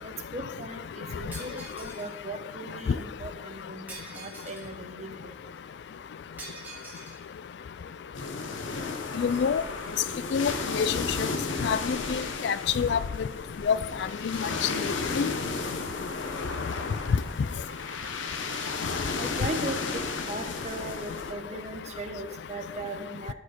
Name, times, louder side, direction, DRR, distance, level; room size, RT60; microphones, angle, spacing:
voice 1, 0.0-3.9 4.1-5.3 19.1-23.3, right 2 dB, 35° right, 0.9 m, -38 dB
Shatter, 1.3-2.1 3.9-4.7 6.4-7.2, right 2 dB, 10° right, 2.0 m, -44 dB
sound 1, 8.1-21.3, left 4 dB, 90° left, 0.9 m, -33 dB
voice 2, 9.2-9.6 10.3-10.9 11.6-13.0 13.7-13.8 14.2-14.5 15.2-15.3, left 6 dB, 65° left, 0.3 m, -26 dB
12.5 x 4.7 x 4.4 m
head